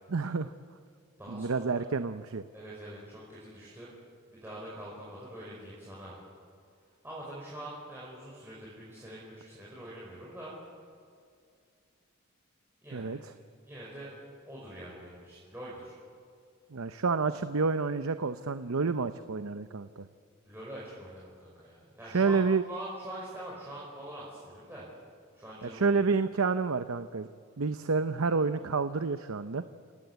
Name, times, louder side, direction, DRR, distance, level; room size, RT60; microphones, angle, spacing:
voice 1, 0.1-0.5 1.3-2.4 12.9-13.2 16.7-20.1 22.1-22.6 25.6-27.3 27.6-29.6, right 4 dB, 90° right, 11 dB, 0.7 m, -29 dB
voice 2, 1.2-1.6 2.5-4.0 4.3-6.2 7.0-10.6 12.8-13.1 13.6-14.1 14.5-16.0 20.4-22.4 22.7-25.0 25.3-26.0, right 1 dB, 10° right, -6 dB, 5.1 m, -44 dB
29.5 x 17.5 x 8.1 m, 2.3 s
head